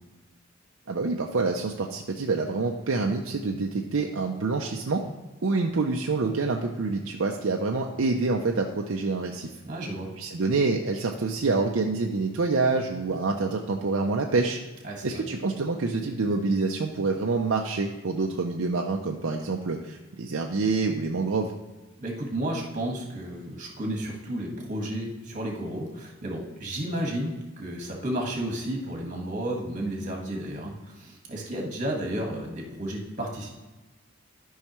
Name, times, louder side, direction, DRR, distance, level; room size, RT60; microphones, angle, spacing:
voice 1, 0.9-5.0 5.4-9.5 10.2-14.6 15.0-21.5, right 3 dB, 60° right, 1 dB, 0.6 m, -27 dB
voice 2, 9.7-10.1 14.8-15.2 22.0-33.5, right 1 dB, 35° right, 0 dB, 1.6 m, -32 dB
12.0 x 5.6 x 3.1 m, 1.2 s
head